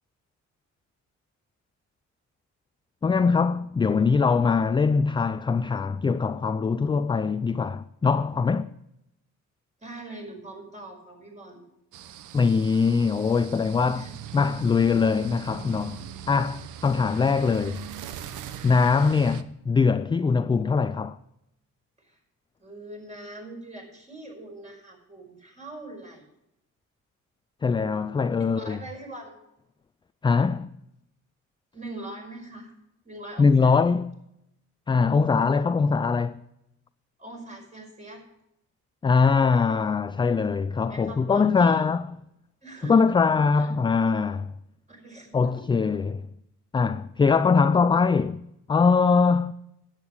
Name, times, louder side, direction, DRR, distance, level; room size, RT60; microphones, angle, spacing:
voice 1, 3.0-8.7 12.3-14.1 14.3-17.8 18.6-21.2 27.6-28.8 30.2-30.7 33.4-34.1 34.9-36.4 39.0-42.1 42.8-44.5 45.3-46.2 46.7-48.4 48.7-49.5, left 5 dB, 15° left, 0.3 m, -22 dB
voice 2, 9.8-11.6 13.9-14.1 22.0-22.2 22.6-26.2 28.6-29.4 31.7-32.7 33.0-33.8 37.2-38.2 40.9-41.9 42.6-43.1 43.5-43.7 44.9-45.7, right 2 dB, 25° right, 5.7 m, -42 dB
sound 1, 11.9-19.4, right 10 dB, 90° right, 0.8 m, -41 dB
11.0 x 9.0 x 6.4 m
cardioid pair, 90°, 30 cm